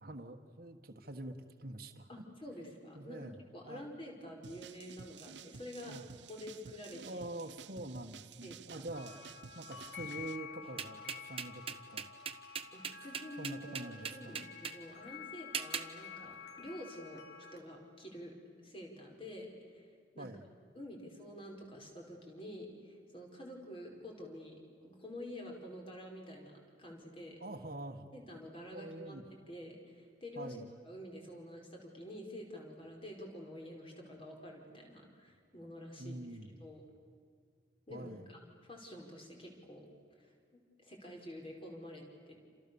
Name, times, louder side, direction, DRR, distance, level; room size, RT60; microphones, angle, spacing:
voice 1, 0.0-2.1 2.9-3.4 3.6-3.9 5.8-6.0 7.0-11.6 11.9-12.1 13.4-14.4 20.2-20.5 27.4-28.0 28.7-29.2 30.3-30.6 36.0-36.7 37.9-38.3, right 1 dB, 50° right, 3 dB, 1.5 m, -45 dB
voice 2, 2.1-6.0 6.3-7.2 8.4-8.8 12.7-17.2 17.5-19.9 20.1-20.3 20.7-24.6 24.8-27.4 28.1-29.2 29.5-30.6 30.8-36.3 36.6-36.8 37.9-38.4 38.7-39.9 40.2-40.3 40.8-42.4, left 1 dB, 30° left, 1 dB, 5.0 m, -48 dB
sound 1, 4.4-10.4, right 5 dB, 75° right, 0.7 m, -52 dB
sound 2, 8.9-17.6, left 6 dB, 60° left, 2.3 m, -50 dB
sound 3, 10.8-14.8 15.5-15.9, right 7 dB, 30° right, 1.1 m, -39 dB
29.5 x 27.5 x 7.1 m, 2.1 s
head